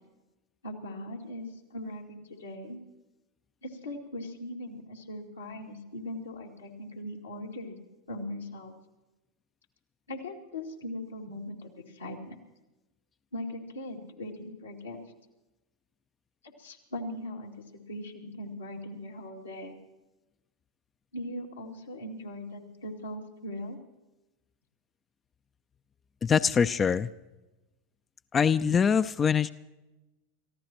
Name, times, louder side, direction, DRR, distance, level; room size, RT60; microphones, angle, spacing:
voice 1, 0.6-2.8 3.6-7.8 8.1-8.7 10.1-12.4 13.3-15.0 16.4-19.7 21.1-23.8, left 1 dB, 90° left, -1 dB, 2.4 m, -40 dB
voice 2, 26.2-27.1 28.3-29.5, left 6 dB, 25° left, 13 dB, 0.4 m, -23 dB
29.5 x 15.0 x 3.0 m, 1.1 s
hypercardioid pair, 90°, 0 cm